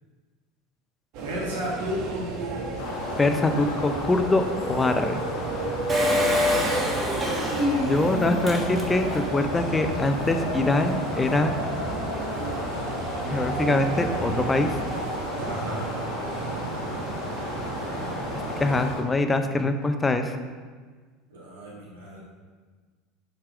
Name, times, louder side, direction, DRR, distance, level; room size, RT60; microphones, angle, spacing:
sound 1, 1.1-18.9, right 3 dB, 60° right, 0.9 m, -32 dB
voice 1, 1.2-2.3 15.4-15.9 21.3-22.2, equal, 80° right, -4 dB, 1.5 m, -33 dB
sound 2, 2.8-19.0, left 2 dB, 65° left, 1.5 m, -35 dB
voice 2, 3.2-5.2 7.9-11.6 13.3-14.7 18.6-20.3, left 2 dB, 20° left, 7 dB, 0.5 m, -24 dB
Engine, 5.9-9.4 9.8-9.9 10.1-10.2, left 1 dB, 25° right, 1.4 m, -26 dB
5.6 x 3.4 x 4.9 m, 1.5 s
hypercardioid pair, 80°, 0 cm